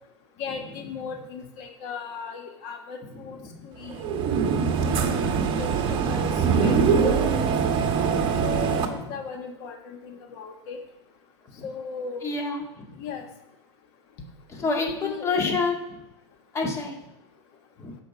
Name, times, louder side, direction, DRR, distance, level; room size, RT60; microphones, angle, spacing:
voice 1, 0.4-3.4 3.6-4.0 4.9-5.2 5.6-5.7 6.1-6.3 6.6-7.5 8.4-10.8 11.6-12.3 13.0-13.2 14.7-15.4, left 6 dB, 50° left, 3 dB, 1.6 m, -37 dB
sound 1, 3.8-8.9, right 6 dB, 35° right, 1.4 m, -23 dB
voice 2, 12.2-12.9 14.6-16.0 16.5-17.0 17.8-18.0, left 3 dB, 20° left, 0 dB, 1.9 m, -28 dB
14.0 x 5.2 x 5.9 m, 0.91 s
hypercardioid pair, 125°, 15 cm